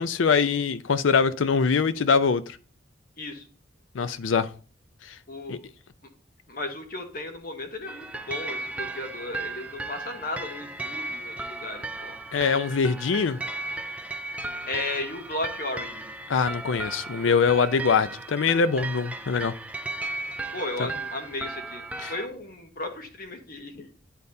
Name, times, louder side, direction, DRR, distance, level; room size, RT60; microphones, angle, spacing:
voice 1, 0.0-2.6 3.9-4.5 5.5-5.6 12.3-13.4 16.3-19.5 20.8-20.9 22.0-22.1, left 5 dB, 90° left, 0.5 m, -23 dB
voice 2, 5.3-5.6 6.5-12.2 14.7-16.1 20.5-23.9, left 2 dB, 50° left, 1.1 m, -35 dB
sound 1, 7.9-22.3, right 2 dB, 5° right, 0.4 m, -36 dB
10.5 x 4.0 x 2.7 m
head